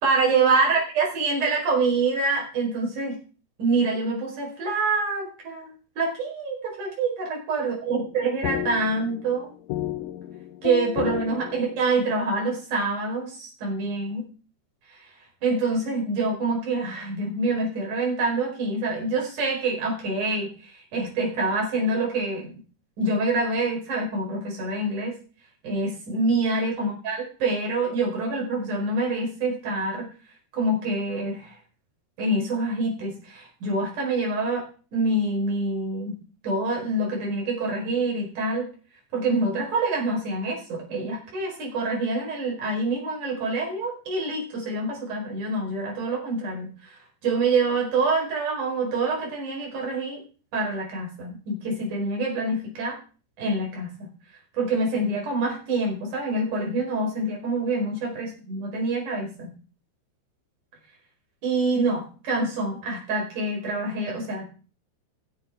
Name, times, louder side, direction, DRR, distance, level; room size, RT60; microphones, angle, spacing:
voice 1, 0.0-3.2 3.6-9.5 10.6-14.3 15.4-22.5 23.0-25.2 25.6-30.1 30.5-31.6 32.2-34.7 34.9-36.2 36.4-38.7 39.1-46.9 47.2-50.2 50.5-53.0 53.4-54.1 54.6-59.5 61.4-64.5, right 3 dB, 45° right, -1 dB, 6.2 m, -26 dB
sound 1, 7.9-12.2, left 14 dB, 85° left, 3.1 m, -33 dB
15.0 x 9.1 x 5.0 m, 0.37 s
omnidirectional pair, 5.4 m